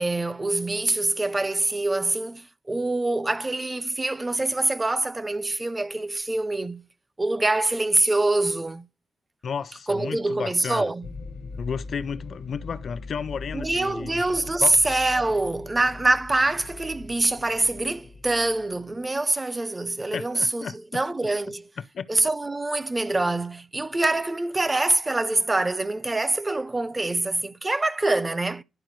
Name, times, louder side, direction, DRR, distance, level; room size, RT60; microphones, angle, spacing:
voice 1, 0.0-6.8 7.2-8.9 9.9-11.1 13.5-21.7 22.1-28.6, right 2 dB, 15° right, 0.4 m, -25 dB
voice 2, 9.4-10.9 11.6-14.2 14.6-14.8 20.1-21.0 21.8-22.1, left 6 dB, 55° left, 0.4 m, -33 dB
sound 1, 11.0-18.9, left 3 dB, 90° left, 1.0 m, -41 dB
12.0 x 4.6 x 3.1 m
wide cardioid pair, 145°, 0 cm